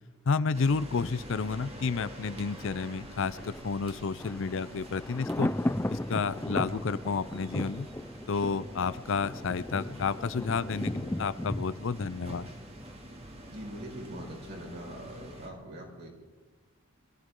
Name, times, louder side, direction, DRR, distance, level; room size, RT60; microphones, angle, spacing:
voice 1, 0.2-5.5 5.9-7.9 8.3-12.5, left 5 dB, 65° left, 16 dB, 0.5 m, -31 dB
sound 1, 0.5-15.5, right 1 dB, 30° right, 2.4 m, -47 dB
Thunder, 2.3-13.2 13.5-13.6, left 1 dB, 10° left, 0.4 m, -36 dB
voice 2, 13.5-16.1, equal, 55° right, -1 dB, 4.9 m, -42 dB
23.5 x 14.5 x 3.8 m, 1.2 s
head